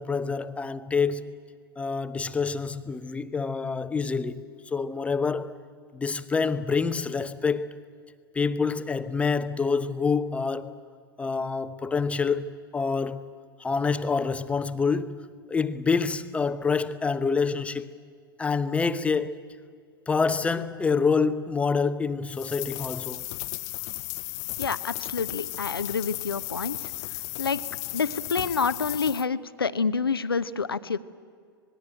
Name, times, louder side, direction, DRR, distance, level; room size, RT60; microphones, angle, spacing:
voice 1, 0.0-1.3 1.8-5.5 5.9-7.8 8.3-10.7 11.2-13.2 13.6-17.9 18.4-19.4 20.1-23.3, left 5 dB, 10° left, 1.0 m, -27 dB
sound 1, 22.3-29.3, left 24 dB, 40° left, 0.6 m, -35 dB
voice 2, 24.6-26.8 27.4-27.6 27.9-31.0, left 5 dB, 80° left, 0.9 m, -28 dB
26.5 x 20.0 x 9.0 m
figure-of-eight pair, 100°, 12 cm